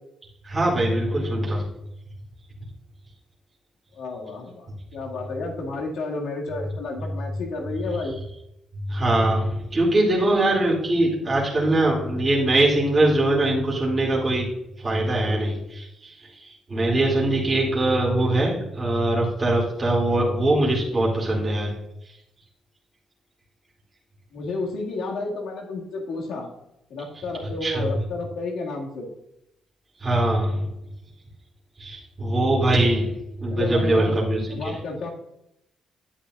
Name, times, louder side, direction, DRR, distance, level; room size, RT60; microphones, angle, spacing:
voice 1, 0.4-1.6 8.7-14.5 14.8-21.7 22.0-22.2 27.6-27.9 30.0-30.7 31.8-33.1 33.4-34.8, right 1 dB, 25° right, -5 dB, 2.5 m, -22 dB
voice 2, 3.9-8.1 24.3-26.5 26.9-29.1 33.5-34.2 34.5-35.1, left 3 dB, 80° left, -1 dB, 2.0 m, -31 dB
10.0 x 8.6 x 2.4 m, 0.85 s
cardioid pair, 90°, 0 cm